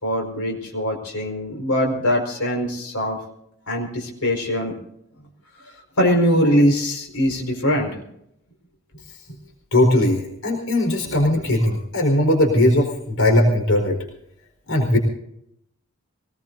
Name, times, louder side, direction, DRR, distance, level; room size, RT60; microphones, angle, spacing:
voice 1, 0.0-3.2 3.7-4.7 6.0-8.0 11.0-11.1, equal, 90° left, 1 dB, 4.8 m, -22 dB
voice 2, 9.7-14.0 14.7-15.0, left 1 dB, 75° left, 3 dB, 4.5 m, -19 dB
23.0 x 20.0 x 2.7 m, 0.74 s
head